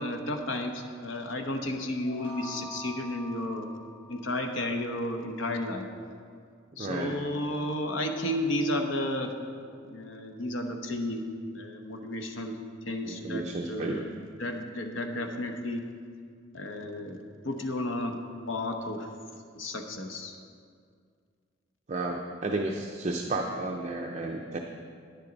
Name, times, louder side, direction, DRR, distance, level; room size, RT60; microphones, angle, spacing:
voice 1, 0.0-3.7 4.1-5.9 6.8-9.3 9.8-11.3 11.5-12.6 12.9-14.1 14.4-15.8 16.5-18.2 18.5-19.1 19.5-20.3, left 1 dB, 90° left, 4 dB, 1.0 m, -32 dB
sound 1, 2.0-4.8, equal, 40° left, 2.8 m, -45 dB
voice 2, 6.7-7.2 13.0-14.1 21.9-24.6, right 2 dB, 40° right, 1 dB, 0.6 m, -32 dB
10.5 x 10.0 x 4.0 m, 2.2 s
head